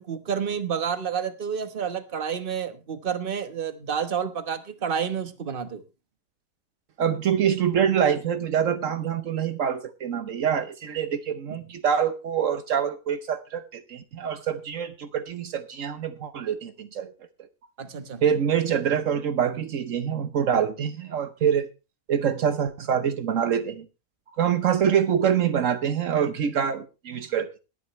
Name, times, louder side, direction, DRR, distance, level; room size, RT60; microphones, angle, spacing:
voice 1, 0.0-5.8 11.5-11.6 17.8-18.2, right 7 dB, 45° right, 10 dB, 1.3 m, -29 dB
voice 2, 7.0-17.1 18.2-21.7 22.1-23.9 24.3-27.6, right 8 dB, 70° right, 11 dB, 1.2 m, -25 dB
21.0 x 9.2 x 3.1 m, 0.30 s
omnidirectional pair, 1.4 m